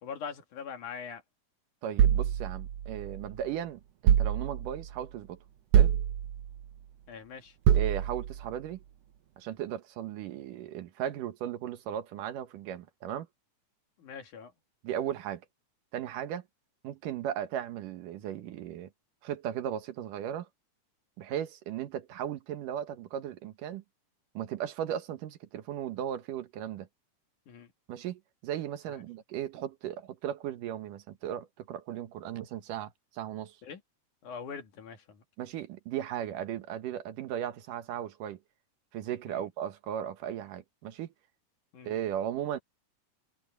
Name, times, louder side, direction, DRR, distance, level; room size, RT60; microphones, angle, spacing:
voice 1, 0.0-1.2 7.1-7.6 14.0-14.5 27.5-27.7 28.9-29.0 33.6-33.8 34.2-35.2 39.3-39.5 41.7-41.9, left 6 dB, 70° left, 3.7 m, -42 dB
voice 2, 1.8-5.4 5.7-5.9 7.7-8.8 9.4-13.3 14.8-15.4 15.9-16.4 16.8-18.9 19.2-20.5 21.2-23.8 24.3-26.9 27.9-33.6 35.4-38.4 38.9-41.1 41.8-42.6, right 10 dB, 85° right, 2.9 m, -36 dB
sound 1, 2.0-3.4 4.1-4.9 5.7-6.6 7.7-8.5, right 9 dB, 65° right, 1.6 m, -25 dB
omnidirectional pair, 3.6 m